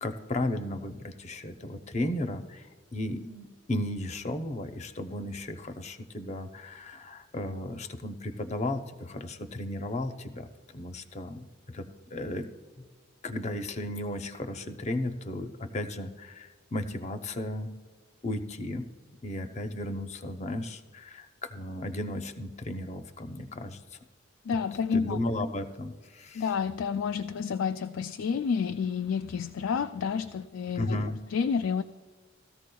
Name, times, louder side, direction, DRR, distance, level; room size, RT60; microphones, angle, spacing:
voice 1, 0.0-10.5 10.7-12.5 12.8-12.9 13.2-17.7 18.2-18.9 19.2-23.8 24.9-26.4 30.7-31.2, left 1 dB, 35° left, 7 dB, 0.7 m, -35 dB
voice 2, 24.5-25.2 26.3-31.0 31.3-31.8, left 6 dB, 85° left, 8 dB, 0.4 m, -29 dB
18.0 x 14.0 x 2.3 m, 1.4 s
head